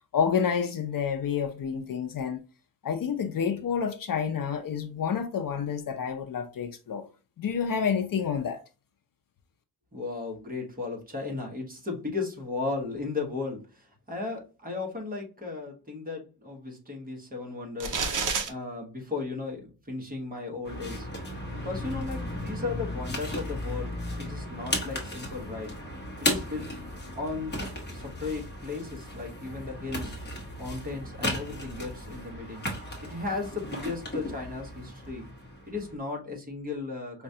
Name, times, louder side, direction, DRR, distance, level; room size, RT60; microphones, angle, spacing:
voice 1, 0.1-2.4 2.8-7.1 7.4-8.6, left 7 dB, 55° left, 0.5 m, -29 dB
voice 2, 9.9-18.1 18.4-21.3 21.6-25.7 26.2-26.7 27.1-27.6 27.9-30.1 30.6-32.7 33.0-35.3 35.7-37.2, left 3 dB, 20° right, 1.0 m, -35 dB
sound 1, 17.8-18.5, right 5 dB, 50° right, 0.6 m, -28 dB
sound 2, 20.6-35.9, left 1 dB, 25° left, 0.9 m, -35 dB
4.8 x 2.2 x 2.7 m
wide cardioid pair, 175°, 40 cm